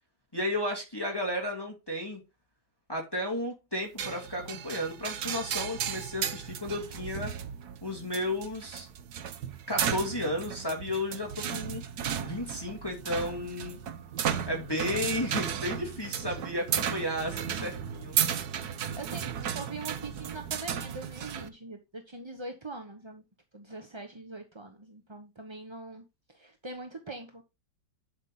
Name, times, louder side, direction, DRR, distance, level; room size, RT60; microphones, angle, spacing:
voice 1, 0.3-2.2 2.9-7.3 7.8-8.9 9.7-11.8 12.2-13.8 14.5-18.2, left 1 dB, 10° left, 2.4 m, -33 dB
sound 1, 4.0-21.5, right 8 dB, 65° right, 1.3 m, -34 dB
voice 2, 11.2-11.7 17.4-17.7 18.8-23.2 23.5-27.4, right 2 dB, 20° right, 0.7 m, -43 dB
11.0 x 5.8 x 3.9 m
omnidirectional pair, 2.0 m